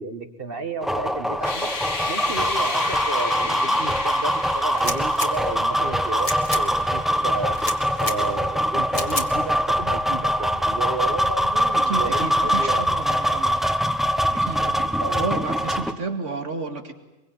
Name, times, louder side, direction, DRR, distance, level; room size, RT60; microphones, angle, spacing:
voice 1, 0.0-1.7 2.1-7.6 8.0-13.0 14.4-15.3, right 3 dB, 50° right, 8 dB, 2.1 m, -32 dB
sound 1, 0.8-15.9, equal, ahead, 1.2 m, -23 dB
sound 2, 1.4-8.2, left 3 dB, 80° left, 2.4 m, -34 dB
sound 3, 4.7-5.3 6.1-6.6 7.5-8.2 8.9-9.3, left 2 dB, 30° left, 2.1 m, -30 dB
voice 2, 11.7-13.7 14.3-16.9, right 3 dB, 85° right, 6 dB, 2.7 m, -31 dB
24.0 x 23.0 x 9.3 m, 1.0 s
omnidirectional pair, 1.2 m